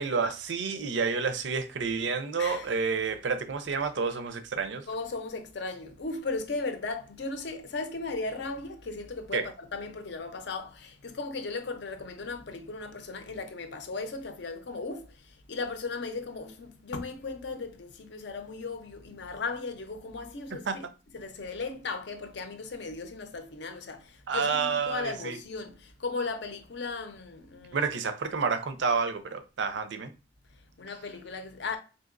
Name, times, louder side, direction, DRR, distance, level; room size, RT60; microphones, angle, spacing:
voice 1, 0.0-4.9 9.3-9.4 20.5-20.8 24.3-25.4 27.7-30.1, right 5 dB, 65° right, 0.5 m, -29 dB
voice 2, 4.9-20.9 21.1-27.9 30.8-31.8, left 3 dB, 65° left, 0.6 m, -36 dB
3.9 x 2.8 x 2.5 m
head